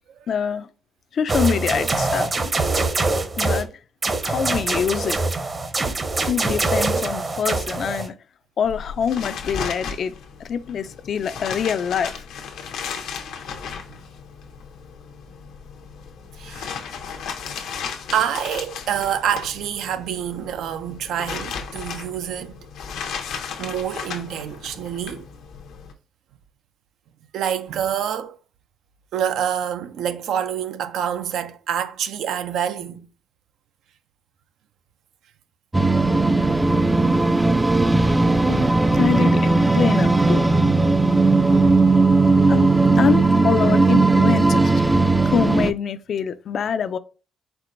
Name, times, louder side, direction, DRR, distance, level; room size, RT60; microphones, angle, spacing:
voice 1, 0.3-0.7 1.1-2.3 3.4-3.7 4.2-5.2 6.3-8.1 8.6-10.1 10.4-12.1 38.5-38.7 39.0-40.4 42.5-42.7 43.0-44.7 45.2-47.0, left 7 dB, 60° left, 0.4 m, -24 dB
sound 1, 1.3-3.7 4.0-8.1, right 3 dB, 35° right, 0.7 m, -24 dB
sound 2, 8.6-25.9, left 6 dB, 85° left, 0.8 m, -35 dB
voice 2, 16.4-16.7 18.1-22.6 23.6-25.2 27.3-28.4 29.1-33.1 38.0-38.2, right 9 dB, 80° right, 0.5 m, -27 dB
sound 3, 35.7-45.7, right 3 dB, 15° right, 0.3 m, -17 dB
4.5 x 4.2 x 2.6 m
cardioid pair, 90°, 0 cm